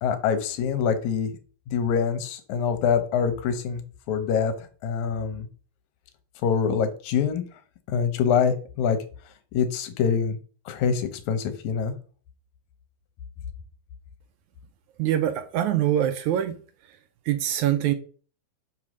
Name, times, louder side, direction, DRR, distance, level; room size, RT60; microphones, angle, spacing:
voice 1, 0.0-1.3 1.7-3.8 4.1-4.5 4.8-5.5 6.4-7.4 7.9-9.0 9.5-10.4 10.7-11.9, left 7 dB, 70° left, 2.2 m, -25 dB
voice 2, 15.0-16.6 17.3-17.9, right 11 dB, 80° right, 1.8 m, -24 dB
5.7 x 4.7 x 6.2 m
omnidirectional pair, 3.9 m